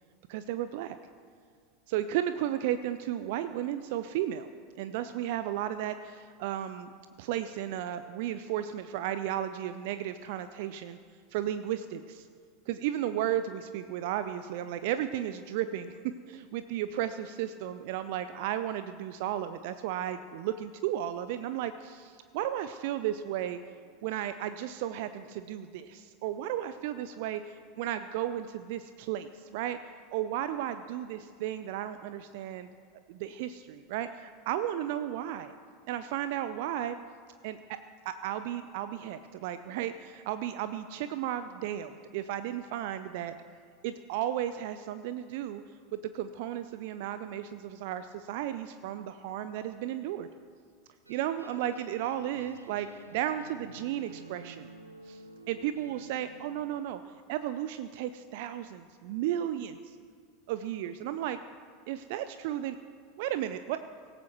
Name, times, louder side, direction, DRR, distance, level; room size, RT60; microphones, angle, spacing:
voice 1, 0.3-1.0 1.9-4.5 4.8-6.9 7.2-11.0 11.3-12.3 12.7-15.9 16.3-23.6 24.0-29.8 30.1-32.7 33.1-35.5 35.9-37.0 37.4-37.8 38.0-43.4 43.8-45.6 45.9-50.3 51.1-54.7 55.1-55.2 55.5-57.0 57.3-60.0 60.5-61.4 61.9-62.8 63.2-63.8, right 11 dB, 55° right, 11 dB, 0.5 m, -34 dB
sound 1, 51.0-56.7, right 2 dB, 90° right, 0.9 m, -50 dB
24.0 x 15.0 x 3.1 m, 2.1 s
figure-of-eight pair, 85°, 0 cm